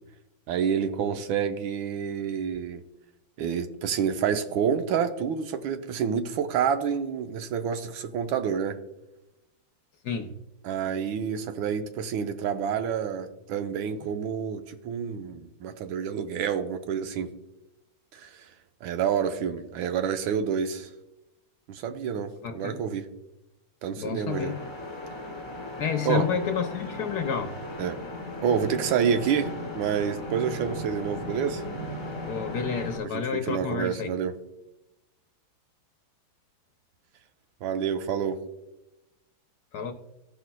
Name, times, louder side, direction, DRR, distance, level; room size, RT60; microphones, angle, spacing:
voice 1, 0.5-2.8 3.4-8.8 10.6-17.3 18.1-18.5 18.8-20.9 21.7-23.1 23.8-24.5 26.0-26.3 27.8-28.0 28.4-31.6 33.0-34.3 37.6-38.4, right 7 dB, 80° right, 1.5 m, -28 dB
voice 2, 10.0-10.4 22.4-22.8 24.0-24.6 25.8-27.6 30.6-30.8 32.3-34.1 39.7-39.9, left 7 dB, 65° left, 1.0 m, -30 dB
sound 1, 24.3-33.0, left 1 dB, 15° left, 1.6 m, -37 dB
15.5 x 5.7 x 2.2 m
omnidirectional pair, 2.2 m